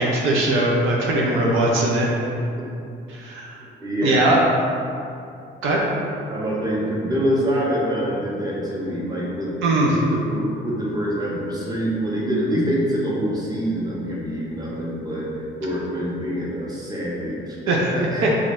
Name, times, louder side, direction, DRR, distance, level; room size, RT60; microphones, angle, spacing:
voice 1, 0.0-2.1 3.1-3.5 4.0-4.4 5.6-5.8 9.6-10.0 17.7-17.9 18.2-18.3, right 2 dB, 85° right, -2 dB, 0.6 m, -20 dB
voice 2, 3.6-4.4 6.3-9.6 10.1-18.3, equal, 20° right, -5 dB, 0.9 m, -25 dB
3.7 x 3.0 x 2.5 m, 2.5 s
cardioid pair, 90°, 20 cm